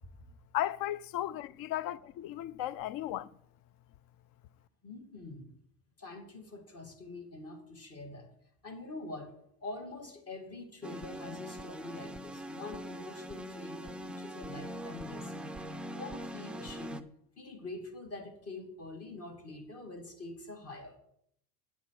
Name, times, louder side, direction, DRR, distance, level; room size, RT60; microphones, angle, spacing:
voice 1, 0.5-3.3, left 13 dB, 50° left, 0.5 m, -35 dB
voice 2, 4.8-5.5 6.0-8.3 8.6-9.3 9.6-15.5 15.9-17.1 17.4-21.0, left 2 dB, 30° left, 2.4 m, -45 dB
sound 1, 10.8-17.0, equal, ahead, 0.4 m, -42 dB
8.9 x 8.0 x 4.8 m
hypercardioid pair, 85°, 47 cm